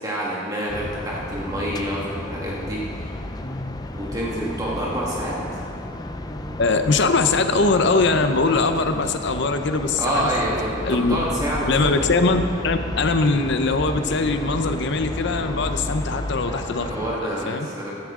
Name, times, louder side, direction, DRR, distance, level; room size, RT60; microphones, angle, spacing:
voice 1, 0.0-3.1 3.9-5.6 10.0-12.0 16.8-17.9, right 1 dB, 20° right, -5 dB, 1.8 m, -27 dB
sound 1, 0.7-17.2, left 1 dB, 20° left, 0.5 m, -32 dB
Guitar, 3.4-5.1 5.4-7.1 7.5-7.8 8.1-8.4 8.8-8.9 9.2-9.4 9.7-9.9, equal, 35° left, 2.8 m, -39 dB
voice 2, 6.6-10.3 10.8-11.2 11.7-16.9 17.2-17.7, left 3 dB, 60° left, 8 dB, 0.7 m, -21 dB
15.5 x 10.5 x 3.8 m, 2.4 s
head